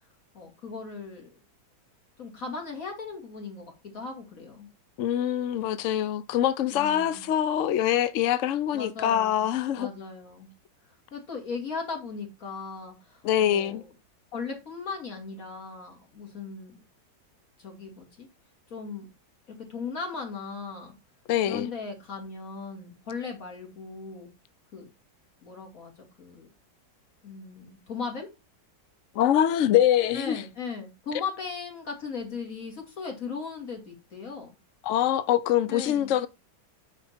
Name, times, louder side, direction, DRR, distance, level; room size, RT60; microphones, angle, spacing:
voice 1, 0.3-1.4 2.2-4.7 6.7-7.3 8.7-9.5 9.8-10.5 10.9-13.9 14.3-16.8 17.6-18.3 18.7-19.1 19.5-21.0 21.5-24.3 24.7-24.9 25.4-26.5 27.2-28.3 30.1-34.6 35.7-36.1, left 4 dB, 50° left, 2.9 m, -38 dB
voice 2, 5.0-9.9 13.2-13.8 21.3-21.7 29.2-30.4 34.8-36.3, left 11 dB, 70° left, 0.7 m, -24 dB
9.0 x 5.2 x 4.3 m
omnidirectional pair, 1.9 m